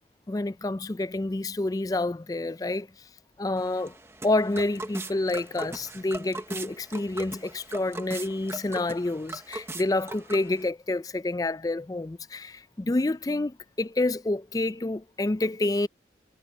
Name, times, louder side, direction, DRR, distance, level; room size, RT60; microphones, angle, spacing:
voice 1, 0.3-2.9 3.4-3.9 4.2-15.9, left 2 dB, 20° left, 0.4 m, -28 dB
sound 1, 3.6-10.7, right 2 dB, 15° right, 0.8 m, -40 dB
head